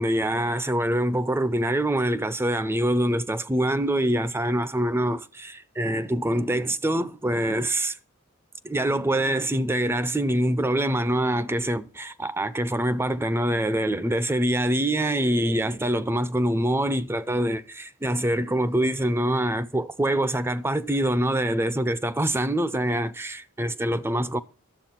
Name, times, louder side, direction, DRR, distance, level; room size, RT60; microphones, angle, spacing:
voice 1, 0.0-8.0 8.6-24.4, right 1 dB, 10° right, 0.5 m, -25 dB
12.0 x 7.5 x 5.8 m
head